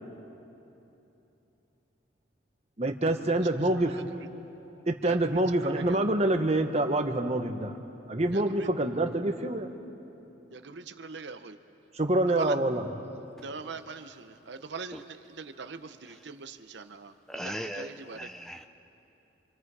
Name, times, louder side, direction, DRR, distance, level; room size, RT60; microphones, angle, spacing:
voice 1, 2.8-4.0 4.9-7.8 8.1-9.7 11.9-13.0, right 1 dB, 35° right, 1.1 m, -26 dB
voice 2, 10.5-11.5 12.4-12.5 13.4-14.1 14.5-15.0 15.4-15.8 16.3-17.1 17.4-18.2, right 4 dB, 65° right, 0.8 m, -41 dB
voice 3, 17.3-18.7, equal, ahead, 0.5 m, -38 dB
27.5 x 26.5 x 4.8 m
head